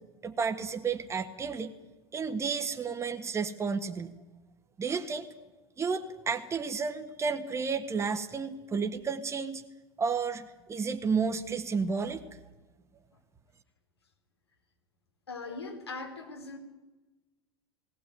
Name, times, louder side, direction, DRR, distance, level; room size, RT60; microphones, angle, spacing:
voice 1, 0.2-1.7 2.1-4.1 4.8-5.3 5.8-9.6 10.0-12.2, right 5 dB, 20° right, 6 dB, 1.6 m, -32 dB
voice 2, 15.3-16.6, left 3 dB, 85° left, 3 dB, 4.0 m, -40 dB
19.0 x 17.5 x 9.4 m, 1.1 s
figure-of-eight pair, 80°, 13 cm